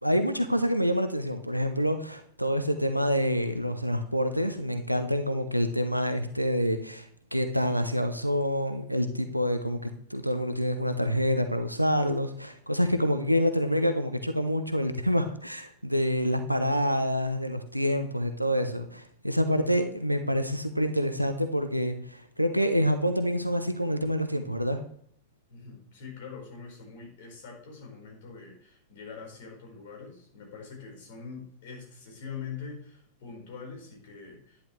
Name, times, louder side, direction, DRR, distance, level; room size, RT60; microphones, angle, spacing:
voice 1, 0.0-24.8, equal, 90° right, 8 dB, 0.8 m, -27 dB
voice 2, 25.5-34.6, left 5 dB, 55° left, 1 dB, 4.7 m, -43 dB
10.5 x 9.8 x 3.2 m, 0.62 s
figure-of-eight pair, 90°, 0 cm